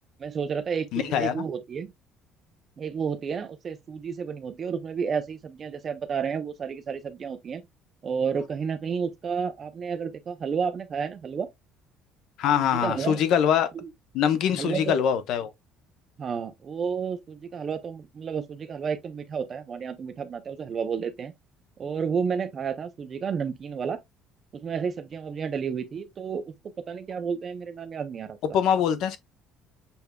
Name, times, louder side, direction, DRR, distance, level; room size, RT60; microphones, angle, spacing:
voice 1, 0.2-1.9 2.8-7.6 8.0-11.5 12.6-13.2 13.7-13.9 14.5-15.0 16.2-21.3 21.8-24.0 24.5-26.5 26.9-28.4, right 6 dB, 25° right, 0.5 m, -31 dB
voice 2, 0.9-1.4 12.4-13.7 14.1-15.5 28.5-29.2, left 8 dB, 55° left, 0.7 m, -23 dB
6.9 x 3.4 x 2.2 m
cardioid pair, 175°, 0 cm